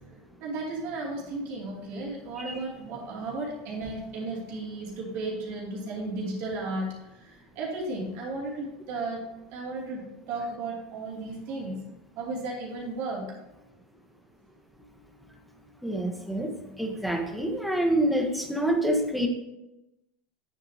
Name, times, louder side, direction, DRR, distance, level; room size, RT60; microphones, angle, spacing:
voice 1, 0.4-9.2 9.5-11.8 12.2-13.3, right 2 dB, 60° right, -3 dB, 2.8 m, -34 dB
voice 2, 15.8-16.5 16.8-19.3, right 1 dB, ahead, 2 dB, 1.3 m, -27 dB
8.9 x 7.7 x 2.9 m, 0.93 s
supercardioid pair, 125°, 5 cm